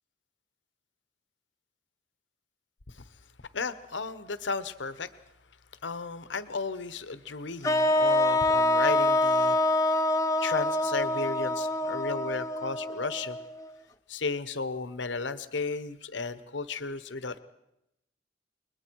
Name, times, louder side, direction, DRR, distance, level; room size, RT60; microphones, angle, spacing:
voice 1, 3.5-5.1 5.8-10.0 10.4-13.4 14.1-17.4, left 4 dB, 80° left, 13 dB, 1.1 m, -34 dB
sound 1, 7.6-13.7, left 1 dB, 15° left, 0.8 m, -26 dB
29.5 x 21.5 x 4.7 m, 0.86 s
head